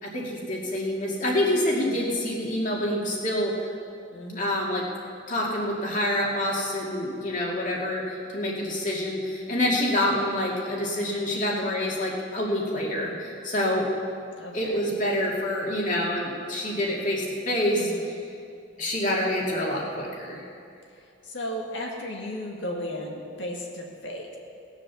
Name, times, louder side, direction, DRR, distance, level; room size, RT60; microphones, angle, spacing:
voice 1, 0.0-3.5 4.4-4.8 5.3-13.9 14.5-17.9 18.8-20.4, left 1 dB, 40° left, -3 dB, 2.4 m, -27 dB
voice 2, 4.1-4.6 14.4-14.8 17.7-18.1 21.2-24.4, left 1 dB, 75° left, 0 dB, 1.9 m, -35 dB
18.5 x 7.3 x 7.0 m, 2.5 s
head